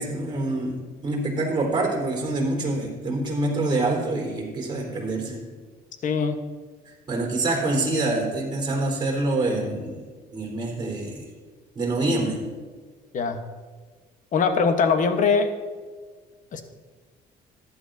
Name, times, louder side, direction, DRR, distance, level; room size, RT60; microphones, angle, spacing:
voice 1, 0.0-5.4 6.9-10.1 10.3-11.2 11.7-12.4, right 2 dB, 25° right, 0 dB, 3.8 m, -26 dB
voice 2, 6.0-6.4 13.1-13.4 14.3-15.5 16.5-16.6, left 5 dB, 50° left, 8 dB, 1.1 m, -21 dB
15.0 x 11.0 x 2.7 m, 1.5 s
cardioid pair, 110°, 17 cm